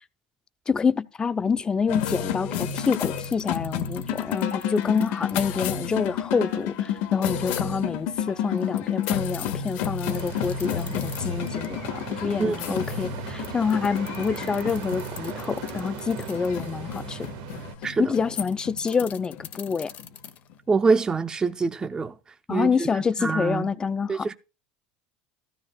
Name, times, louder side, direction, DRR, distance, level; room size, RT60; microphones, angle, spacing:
voice 1, 0.7-17.3 18.0-19.9 22.5-24.3, left 5 dB, 20° left, 0.6 m, -27 dB
sound 1, 1.9-20.5, left 9 dB, 70° left, 1.5 m, -31 dB
sound 2, 2.6-6.1 8.6-11.7 12.0-12.1 13.2-17.0 18.2-20.6, left 10 dB, 45° left, 1.2 m, -43 dB
sound 3, 10.0-17.7, right 8 dB, 75° right, 1.6 m, -38 dB
voice 2, 12.4-12.8 17.8-18.1 20.7-22.1 22.5-23.7 24.1-24.3, right 4 dB, 20° right, 0.6 m, -25 dB
14.5 x 13.0 x 2.3 m
supercardioid pair, 115°, 4 cm